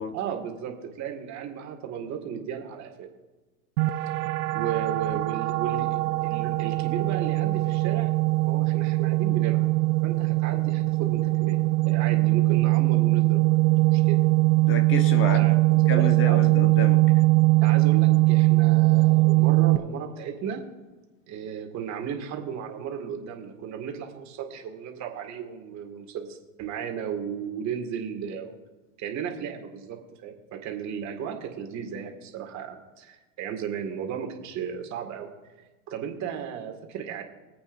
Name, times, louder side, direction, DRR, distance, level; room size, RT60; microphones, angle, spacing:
voice 1, 0.1-3.1 4.5-8.1 8.5-9.7 10.0-11.6 11.9-14.2 15.2-16.4 17.6-20.6 21.3-28.6 29.0-35.3 35.6-37.2, right 8 dB, 40° right, 3 dB, 2.2 m, -35 dB
sound 1, 3.8-19.8, right 22 dB, 70° right, 0.6 m, -21 dB
voice 2, 14.7-15.4 15.9-17.0, left 4 dB, 25° left, 7 dB, 1.3 m, -30 dB
24.5 x 8.5 x 2.7 m, 1.2 s
hypercardioid pair, 120°, 45 cm